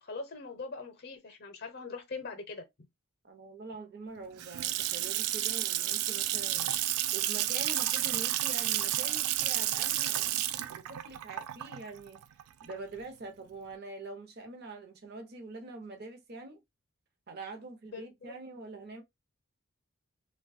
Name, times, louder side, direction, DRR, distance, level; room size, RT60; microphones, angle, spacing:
voice 1, 0.0-2.6 17.9-18.3, left 4 dB, 45° left, 0.6 m, -42 dB
voice 2, 3.2-6.8 7.1-10.4 10.7-12.2 12.6-16.6 17.3-19.0, right 3 dB, 45° right, 0.7 m, -44 dB
Water tap faucet / Sink (filling or washing) / Splash splatter, 4.2-13.0, right 13 dB, 85° right, 0.3 m, -31 dB
3.0 x 2.2 x 2.4 m
head